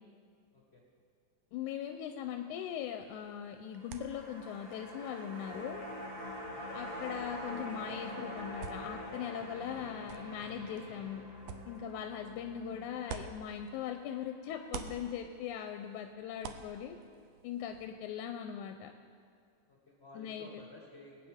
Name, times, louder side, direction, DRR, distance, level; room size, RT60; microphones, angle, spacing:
voice 1, 0.5-0.8 6.5-6.9 12.0-12.4 17.9-18.1 19.7-21.3, left 2 dB, 40° left, -3 dB, 0.9 m, -55 dB
voice 2, 1.5-5.8 6.7-11.2 11.7-17.0 17.4-18.9 20.2-20.5, left 9 dB, 90° left, 5 dB, 2.0 m, -40 dB
sound 1, 3.0-14.2 14.5-17.9, right 7 dB, 75° right, 1.6 m, -51 dB
sound 2, 3.7-14.2 14.5-14.6, left 1 dB, 20° right, 1.1 m, -45 dB
22.0 x 9.0 x 3.6 m, 2.2 s
omnidirectional pair, 3.4 m